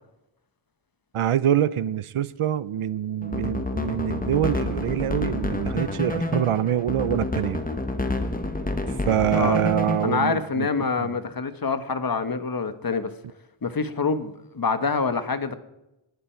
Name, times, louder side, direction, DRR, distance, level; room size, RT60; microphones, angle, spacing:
voice 1, 1.1-7.6 9.1-10.7 11.0-11.1, right 10 dB, 90° right, 0.8 m, -25 dB
sound 1, 3.2-10.3, left 2 dB, 15° left, 1.4 m, -28 dB
voice 2, 10.0-13.1 13.6-15.6, left 4 dB, 45° left, 1.3 m, -26 dB
20.0 x 12.0 x 4.5 m
wide cardioid pair, 115°, 50 cm